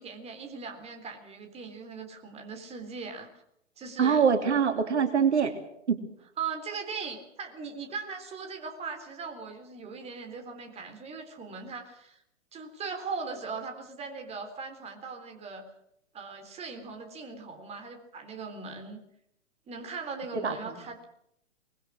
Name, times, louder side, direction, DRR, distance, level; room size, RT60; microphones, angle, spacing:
voice 1, 0.0-3.4 3.8-4.2 6.4-12.2 12.5-15.7 16.1-19.0 19.7-21.0, right 5 dB, 15° right, 4 dB, 3.6 m, -39 dB
voice 2, 4.0-5.5 5.9-6.0 20.3-20.8, right 6 dB, 65° right, 6 dB, 3.1 m, -24 dB
24.0 x 21.0 x 6.4 m, 0.76 s
figure-of-eight pair, 115°, 37 cm